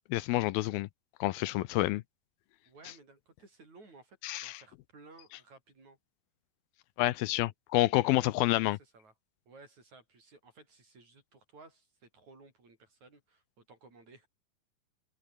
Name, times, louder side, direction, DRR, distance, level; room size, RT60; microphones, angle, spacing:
voice 1, 0.1-0.9 1.2-2.0 4.2-4.6 7.0-8.8, left 17 dB, 80° left, 2.5 m, -28 dB
voice 2, 2.7-6.0 7.8-9.1 9.5-14.3, right 3 dB, 45° right, 8.9 m, -57 dB
omnidirectional pair, 4.4 m